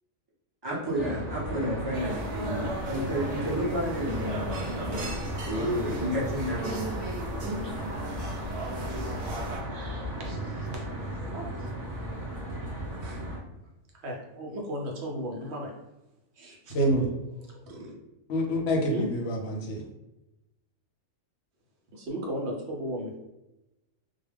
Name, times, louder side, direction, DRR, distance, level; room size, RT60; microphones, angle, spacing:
voice 1, 0.6-4.4 5.5-6.8, equal, 25° right, -5 dB, 0.6 m, -31 dB
Traffic noise roadway noise, 0.9-13.4, equal, 20° left, 0.7 m, -35 dB
voice 2, 1.2-2.0 2.6-2.8 4.6-5.2 6.6-6.8 7.4-7.9 8.2-8.7 9.7-10.8 11.3-11.7 13.0-13.3 13.9-15.7 16.3-17.1 17.4-17.9 18.8-19.1 21.9-23.2, right 1 dB, 60° right, 0 dB, 0.9 m, -37 dB
sound 1, 1.9-9.6, right 2 dB, 85° right, 0.3 m, -36 dB
voice 3, 16.7-17.0 18.3-19.8, equal, 65° left, 1 dB, 0.7 m, -26 dB
2.3 x 2.2 x 3.3 m, 0.95 s
omnidirectional pair, 1.4 m